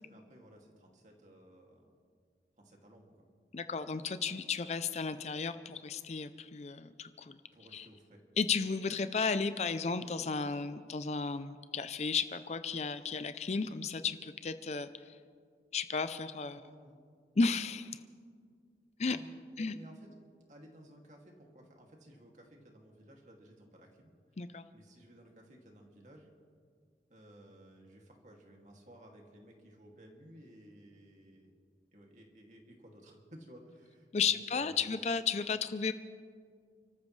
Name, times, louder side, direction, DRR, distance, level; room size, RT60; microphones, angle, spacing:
voice 1, 0.0-2.0 2.6-3.1 7.5-8.2 16.5-17.0 19.0-24.1 24.7-26.3 27.1-31.5 31.9-34.9, equal, 45° right, 0 dB, 2.4 m, -56 dB
voice 2, 3.5-7.4 7.7-7.9 8.4-15.2 15.7-16.6 17.4-18.0 19.0-19.2 19.6-19.8 24.4-24.7 34.1-35.9, left 5 dB, 40° left, 12 dB, 0.5 m, -34 dB
30.0 x 14.0 x 3.2 m, 2.1 s
head